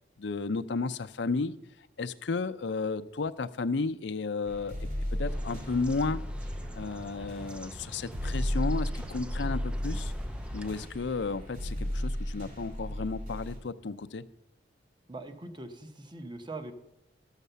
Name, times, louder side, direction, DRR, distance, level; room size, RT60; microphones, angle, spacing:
voice 1, 0.2-1.6 2.0-4.7 5.2-6.2 6.7-10.1 10.5-14.2, left 4 dB, 75° left, 11 dB, 0.5 m, -33 dB
sound 1, 4.4-13.6, equal, 45° right, 4.7 m, -35 dB
sound 2, 5.3-10.9, equal, 5° right, 0.4 m, -44 dB
voice 2, 15.1-16.7, right 2 dB, 25° right, 7 dB, 0.9 m, -42 dB
12.5 x 7.3 x 6.8 m, 0.91 s
head